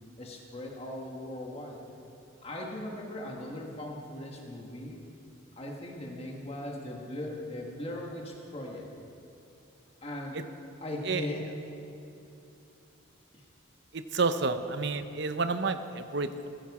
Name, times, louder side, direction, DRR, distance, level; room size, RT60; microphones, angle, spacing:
voice 1, 0.2-1.8 2.4-5.0 5.6-8.9 10.0-10.4 10.8-11.5 13.3-13.4, left 1 dB, 30° left, 0 dB, 1.6 m, -39 dB
voice 2, 13.9-16.5, right 4 dB, 55° right, 10 dB, 0.7 m, -30 dB
15.5 x 14.5 x 4.9 m, 2.8 s
head